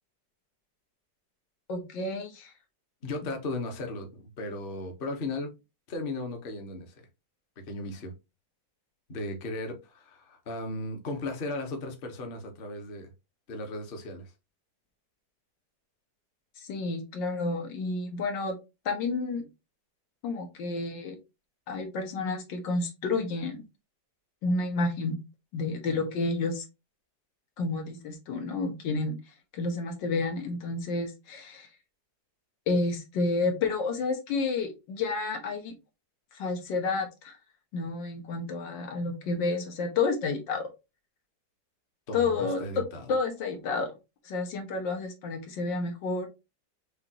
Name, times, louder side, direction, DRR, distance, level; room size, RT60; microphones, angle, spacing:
voice 1, 1.7-2.5 16.6-18.6 18.9-19.5 20.2-21.2 21.7-23.6 24.4-25.2 25.5-26.6 27.6-29.2 29.5-31.7 32.7-35.7 36.3-37.4 37.7-40.7 42.1-42.8 43.1-43.9 44.3-46.3, left 3 dB, 85° left, 1.7 m, -30 dB
voice 2, 3.0-5.5 5.9-7.0 7.7-8.1 9.1-13.1 13.5-14.3 42.1-43.1, left 2 dB, 40° left, 0.9 m, -36 dB
6.5 x 2.5 x 2.8 m
omnidirectional pair, 1.9 m